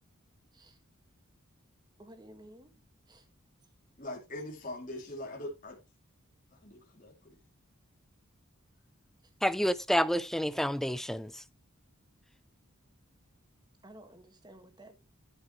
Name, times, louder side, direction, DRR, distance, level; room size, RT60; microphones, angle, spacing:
voice 1, 2.0-2.7 3.1-3.3 9.2-9.3 13.8-15.0, right 1 dB, 20° right, 1.7 m, -53 dB
voice 2, 4.0-5.8 6.6-7.4, left 1 dB, 40° left, 2.6 m, -42 dB
voice 3, 9.4-11.4, equal, ahead, 0.4 m, -29 dB
12.5 x 7.6 x 3.1 m
head